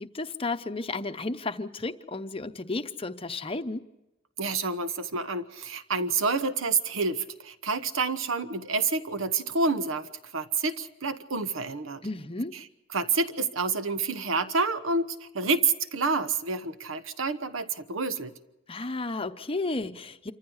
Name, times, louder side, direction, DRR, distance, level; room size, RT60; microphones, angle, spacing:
voice 1, 0.0-3.9 12.0-12.6 18.7-20.3, left 3 dB, 25° left, 8 dB, 0.8 m, -33 dB
voice 2, 4.4-12.0 12.9-18.3, right 4 dB, 70° right, 11 dB, 1.1 m, -28 dB
27.0 x 14.5 x 8.0 m, 0.94 s
head